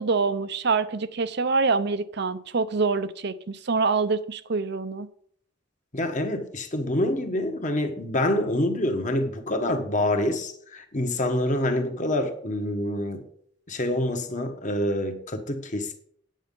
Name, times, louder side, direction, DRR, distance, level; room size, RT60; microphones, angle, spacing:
voice 1, 0.0-5.1, right 4 dB, 60° right, 0.7 m, -25 dB
voice 2, 5.9-13.2 13.7-16.0, left 1 dB, 40° left, 1.5 m, -26 dB
9.2 x 8.9 x 5.5 m
head